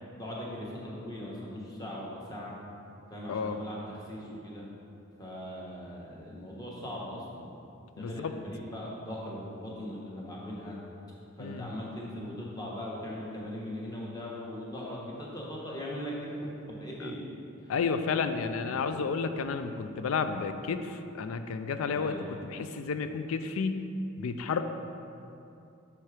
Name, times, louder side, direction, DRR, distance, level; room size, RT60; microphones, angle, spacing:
voice 1, 0.1-2.5 3.1-4.7 5.2-7.5 7.9-10.8 11.4-16.3 16.7-17.2 17.6-17.7 18.2-18.8 21.9-22.3, left 1 dB, 20° left, -4 dB, 1.0 m, -40 dB
voice 2, 8.0-8.3 11.4-11.7 17.7-22.1 22.4-23.8 24.2-24.6, left 5 dB, 80° left, 9 dB, 0.4 m, -31 dB
5.7 x 4.5 x 4.8 m, 2.7 s
head